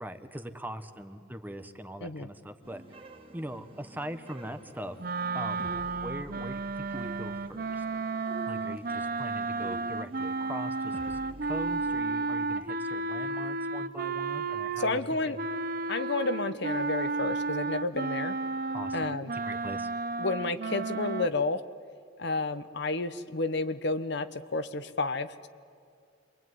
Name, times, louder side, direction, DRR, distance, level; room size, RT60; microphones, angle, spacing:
voice 1, 0.0-2.8 3.3-5.0 5.3-5.7 6.0-7.8 8.5-15.3 18.7-19.1 19.4-19.9, equal, 10° right, 9 dB, 1.1 m, -41 dB
sound 1, 2.6-12.0, right 1 dB, 30° right, 1.7 m, -49 dB
sound 2, 5.0-15.0 15.4-21.3, right 3 dB, 50° right, 0.7 m, -33 dB
voice 2, 14.8-15.4 15.9-18.4 18.9-19.3 20.2-21.6 22.2-25.5, left 3 dB, 60° left, 11 dB, 1.0 m, -31 dB
27.5 x 22.5 x 9.5 m, 2.4 s
head